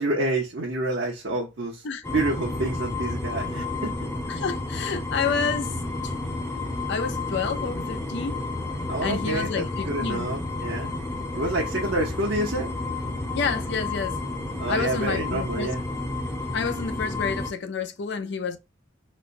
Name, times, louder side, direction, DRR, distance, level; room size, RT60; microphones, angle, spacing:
voice 1, 0.0-3.9 8.9-11.0 11.3-12.7 14.6-15.8, right 2 dB, 60° right, 0.8 m, -28 dB
sound 1, 2.0-17.5, left 2 dB, 15° left, 0.8 m, -31 dB
voice 2, 4.3-5.7 6.9-8.4 9.0-10.3 13.3-14.2 14.7-15.7 16.5-18.6, left 5 dB, 60° left, 0.5 m, -29 dB
4.2 x 2.2 x 2.5 m
head